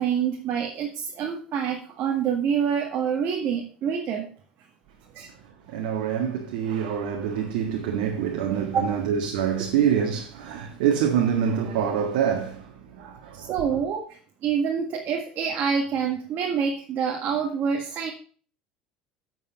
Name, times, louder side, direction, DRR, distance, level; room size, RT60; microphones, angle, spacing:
voice 1, 0.0-4.3 5.1-5.3 8.7-8.9 13.3-18.1, right 7 dB, 50° right, 1.8 m, -27 dB
voice 2, 5.7-13.6, right 8 dB, 75° right, 1.7 m, -26 dB
8.7 x 7.9 x 5.0 m
hypercardioid pair, 80°, 4 cm